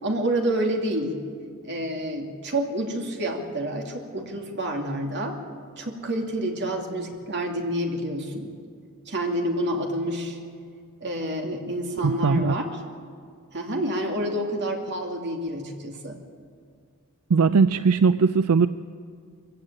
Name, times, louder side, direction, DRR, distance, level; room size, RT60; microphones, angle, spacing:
voice 1, 0.0-1.2 1.6-5.4 5.8-8.5 9.1-10.4 11.0-12.6 13.5-16.2, right 1 dB, 55° right, 2 dB, 2.6 m, -28 dB
voice 2, 12.0-12.5 17.3-18.7, right 5 dB, 80° right, 12 dB, 0.5 m, -19 dB
23.0 x 15.5 x 8.9 m, 2.2 s
head